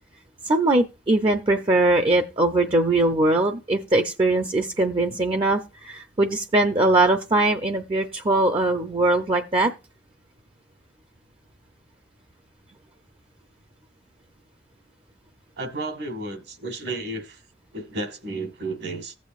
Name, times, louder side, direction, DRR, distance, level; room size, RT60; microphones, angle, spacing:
voice 1, 0.4-9.7, right 2 dB, 30° right, 0.5 m, -21 dB
voice 2, 15.6-17.4 17.7-19.2, right 2 dB, 65° right, 1.5 m, -32 dB
15.0 x 8.3 x 2.4 m
head